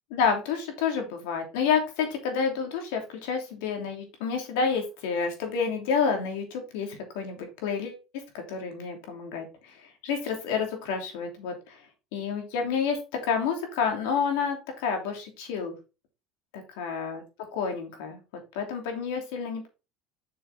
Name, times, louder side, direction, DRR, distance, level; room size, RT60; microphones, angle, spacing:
voice 1, 0.1-8.0 8.5-9.7 10.0-11.8 12.1-13.0 13.2-15.7 16.5-17.2 17.5-18.2 18.5-19.7, left 6 dB, 85° left, 4 dB, 2.9 m, -29 dB
6.9 x 6.7 x 3.6 m, 0.30 s
supercardioid pair, 105°, 0 cm